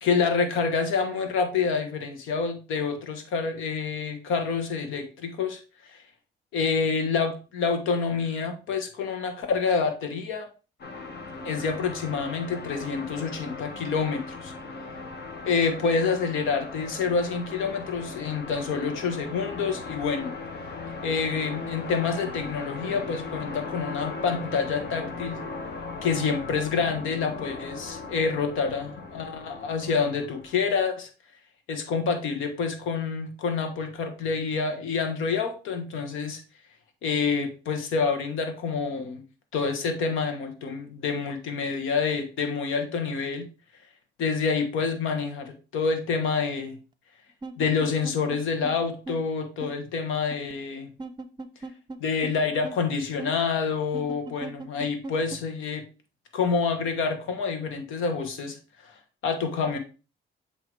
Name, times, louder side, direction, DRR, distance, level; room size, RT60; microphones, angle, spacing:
voice 1, 0.0-6.0 6.5-10.5 11.4-14.5 15.4-20.4 21.0-25.4 26.0-31.1 31.7-36.4 37.0-39.2 39.5-43.5 44.2-46.8 47.6-50.9 52.0-55.8 56.3-58.6 58.8-58.9 59.2-59.8, left 5 dB, 90° left, 6 dB, 1.3 m, -27 dB
sound 1, 10.8-30.7, left 3 dB, 55° left, 1.2 m, -38 dB
sound 2, 47.4-48.4 48.6-48.7 49.1-49.2 49.6-49.7 50.3-50.5 51.0-52.0 52.2-52.3 52.6-52.8 53.2-53.3 53.9-55.4, right 3 dB, 20° right, 0.6 m, -37 dB
7.9 x 2.9 x 4.6 m, 0.33 s
cardioid pair, 90°, 20 cm